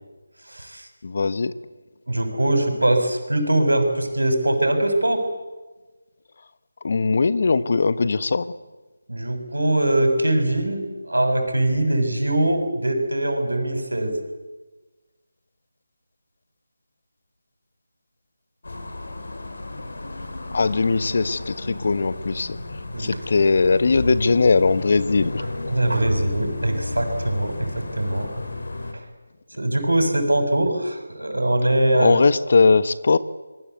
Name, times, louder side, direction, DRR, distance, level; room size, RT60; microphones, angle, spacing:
voice 1, 0.5-0.9 2.1-5.3 9.1-14.1 22.9-23.2 25.7-28.3 28.9-29.0 29.6-32.2, right 1 dB, 90° right, 7 dB, 6.7 m, -22 dB
voice 2, 1.0-1.5 6.8-8.6 20.5-22.6 23.0-25.4 32.0-33.2, left 4 dB, 50° left, 15 dB, 1.3 m, -20 dB
sound 1, 18.6-28.9, left 2 dB, 65° left, 4.6 m, -33 dB
27.0 x 22.0 x 8.3 m, 1.2 s
figure-of-eight pair, 160°, 0 cm